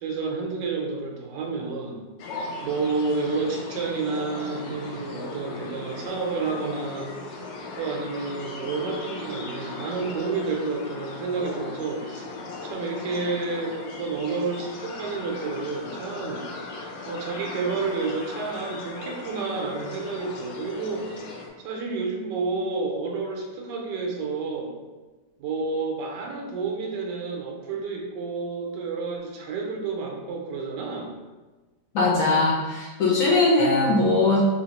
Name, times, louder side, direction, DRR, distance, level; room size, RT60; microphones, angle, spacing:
voice 1, 0.0-2.0 2.6-7.1 7.7-12.2 12.6-16.4 17.0-24.7 25.4-31.1, right 4 dB, 85° right, 0 dB, 1.3 m, -30 dB
sound 1, 2.2-21.5, left 3 dB, 85° left, 1.2 m, -38 dB
voice 2, 31.9-34.4, left 3 dB, 65° left, -4 dB, 0.9 m, -20 dB
3.4 x 2.8 x 2.9 m, 1.3 s
omnidirectional pair, 1.8 m